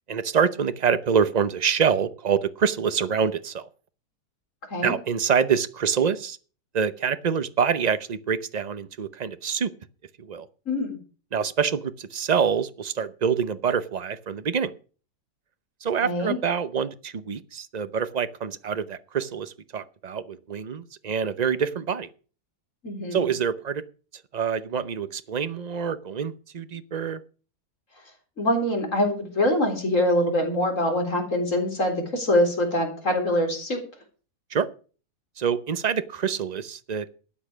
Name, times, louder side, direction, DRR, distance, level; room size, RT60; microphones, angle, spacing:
voice 1, 0.1-3.7 4.8-6.4 6.7-9.7 10.2-10.5 11.3-14.7 15.8-22.1 23.1-23.8 24.3-27.2 34.5-34.7 35.4-37.1, right 7 dB, 40° right, 14 dB, 0.6 m, -26 dB
voice 2, 10.7-11.0 16.0-16.4 22.8-23.2 28.4-33.8, left 1 dB, 50° left, 3 dB, 4.3 m, -24 dB
12.5 x 9.0 x 6.2 m, 0.38 s
omnidirectional pair, 1.7 m